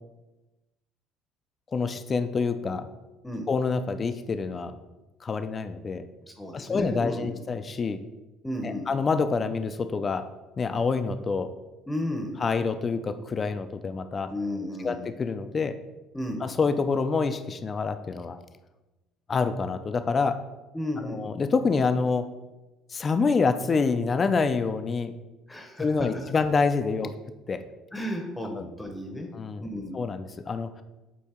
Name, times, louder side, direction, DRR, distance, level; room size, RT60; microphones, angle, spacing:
voice 1, 1.7-2.9 3.5-4.8 5.2-6.1 6.5-8.0 8.6-10.3 10.6-11.5 12.4-14.3 14.8-15.7 16.4-18.4 19.3-20.4 21.0-22.3 22.9-25.1 25.8-27.1 27.5-27.6 28.5-28.7 29.3-29.7 29.9-30.7, left 4 dB, 25° left, 10 dB, 0.4 m, -27 dB
voice 2, 6.2-7.3 8.4-8.9 11.9-12.4 14.3-15.0 16.1-16.4 20.7-21.2 25.5-25.9 27.9-29.3 29.6-30.0, left 1 dB, 10° left, 3 dB, 0.7 m, -33 dB
8.2 x 2.8 x 4.3 m, 1.1 s
cardioid pair, 135°, 0 cm